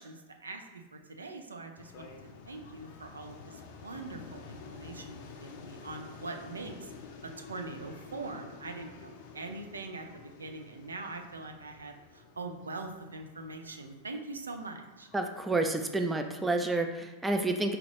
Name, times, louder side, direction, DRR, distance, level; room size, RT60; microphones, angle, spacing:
voice 1, 0.0-2.1 2.5-6.9 7.2-15.1, right 3 dB, 75° right, 5 dB, 0.4 m, -43 dB
sound 1, 1.8-16.4, left 5 dB, 50° left, 0.5 m, -50 dB
voice 2, 15.1-17.8, right 2 dB, 10° right, 5 dB, 0.4 m, -29 dB
4.9 x 3.0 x 3.2 m, 1.1 s
figure-of-eight pair, 90°, 0 cm